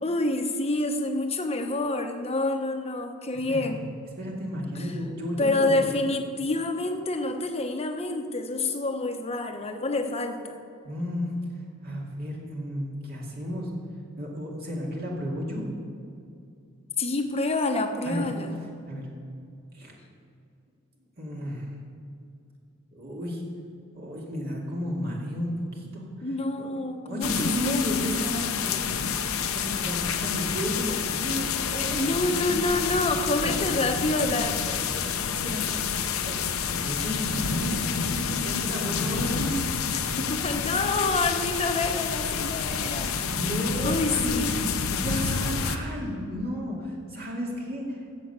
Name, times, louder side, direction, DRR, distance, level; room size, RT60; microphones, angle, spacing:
voice 1, 0.0-3.9 4.7-4.9 5.4-10.6 17.0-18.6 26.2-28.2 32.0-34.9 40.2-43.3 43.8-44.6, left 2 dB, 30° left, 5 dB, 1.0 m, -28 dB
voice 2, 4.2-5.9 10.8-11.3 11.8-13.7 14.2-15.6 18.0-18.2 18.9-19.0 19.7-19.9 21.2-21.7 22.9-23.4 23.9-26.0 26.6-26.7 27.0-28.9 29.5-32.1 32.4-32.6 33.4-33.5 34.2-35.8 36.2-36.4 36.8-39.6 43.0-44.5 44.9-48.0, equal, 50° right, -2 dB, 2.3 m, -33 dB
sound 1, 27.2-45.8, left 6 dB, 75° left, 0.9 m, -28 dB
14.5 x 7.2 x 8.0 m, 2.4 s
head